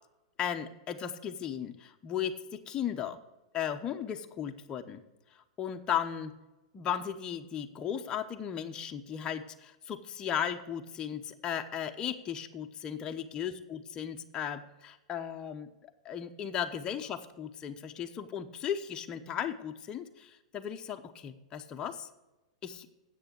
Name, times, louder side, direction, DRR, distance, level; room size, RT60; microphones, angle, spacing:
voice 1, 0.4-3.2 3.5-5.0 5.3-6.4 6.7-15.7 16.0-22.1 22.6-22.9, left 9 dB, 25° left, 5 dB, 0.9 m, -36 dB
8.3 x 6.7 x 7.9 m, 1.0 s
hypercardioid pair, 125°, 3 cm